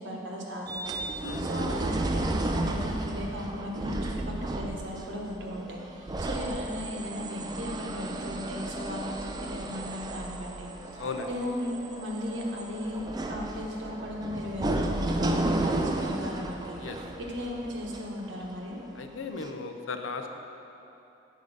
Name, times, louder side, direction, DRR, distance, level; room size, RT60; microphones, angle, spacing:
voice 1, 0.0-13.0 13.3-18.8, left 1 dB, 70° right, -2 dB, 1.2 m, -36 dB
sound 1, 0.7-18.8 19.4-19.5, right 2 dB, 20° right, 0.3 m, -33 dB
voice 2, 19.0-20.3, left 4 dB, 80° left, 6 dB, 0.5 m, -36 dB
7.8 x 4.9 x 5.4 m, 3.0 s
head